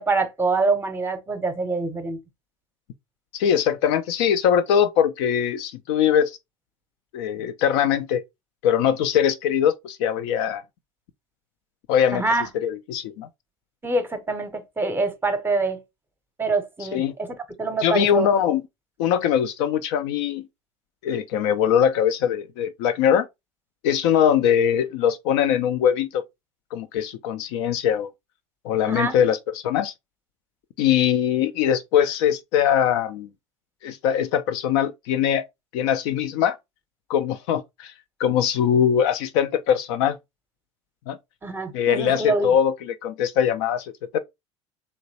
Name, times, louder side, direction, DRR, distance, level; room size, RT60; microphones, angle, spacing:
voice 1, 0.0-2.2 12.1-12.5 13.8-15.8 16.4-18.3 28.9-29.2 41.4-42.5, right 3 dB, 15° right, 0.7 m, -25 dB
voice 2, 3.3-6.4 7.1-8.2 8.6-10.6 11.9-12.2 12.5-13.3 16.9-17.1 17.8-18.6 19.0-20.4 21.0-23.3 23.8-26.2 26.7-28.1 28.6-29.9 30.8-33.3 33.8-35.4 35.7-36.6 37.1-37.9 38.2-40.2 41.1-41.2 41.7-44.2, left 9 dB, 55° left, 0.4 m, -22 dB
3.2 x 2.9 x 2.7 m
figure-of-eight pair, 70°, 16 cm